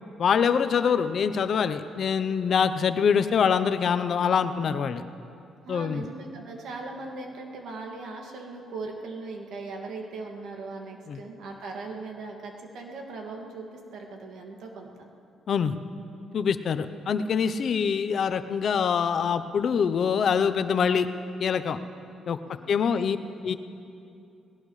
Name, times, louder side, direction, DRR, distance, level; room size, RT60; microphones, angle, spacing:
voice 1, 0.2-5.0 5.7-6.0 11.1-11.2 15.5-15.8 16.3-21.1 21.4-21.8 22.3-22.4 22.7-23.2 23.4-23.5, left 6 dB, 60° left, 11 dB, 0.7 m, -24 dB
voice 2, 5.6-15.1 22.4-23.1, right 3 dB, 75° right, 1 dB, 2.2 m, -39 dB
20.5 x 17.5 x 3.3 m, 2.6 s
cardioid pair, 90°, 0 cm